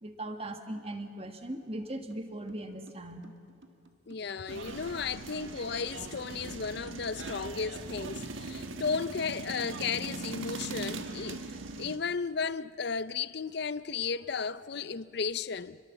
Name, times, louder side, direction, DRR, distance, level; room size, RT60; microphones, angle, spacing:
voice 1, 0.0-3.3, right 1 dB, 30° right, 1.6 m, -39 dB
sound 1, 2.1-2.2 2.5-11.7, right 2 dB, 65° right, 1.8 m, -53 dB
voice 2, 4.1-15.8, left 5 dB, 55° left, 0.5 m, -34 dB
sound 2, 4.5-12.0, right 3 dB, 80° right, 1.4 m, -40 dB
28.5 x 22.0 x 7.2 m
head